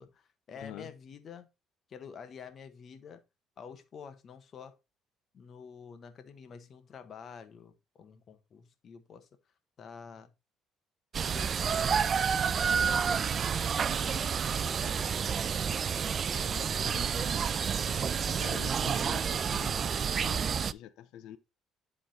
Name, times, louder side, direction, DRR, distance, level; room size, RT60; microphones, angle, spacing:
voice 1, 0.0-1.5 1.9-3.2 3.6-4.8 5.3-9.3 9.8-10.3 11.3-15.4 16.2-17.3, left 6 dB, 50° left, 1.4 m, -49 dB
voice 2, 0.5-0.9 16.9-17.1 18.4-21.4, left 12 dB, 80° left, 0.7 m, -46 dB
sound 1, 11.1-20.7, right 7 dB, 45° right, 0.4 m, -29 dB
10.5 x 3.8 x 4.2 m
supercardioid pair, 80°, 0 cm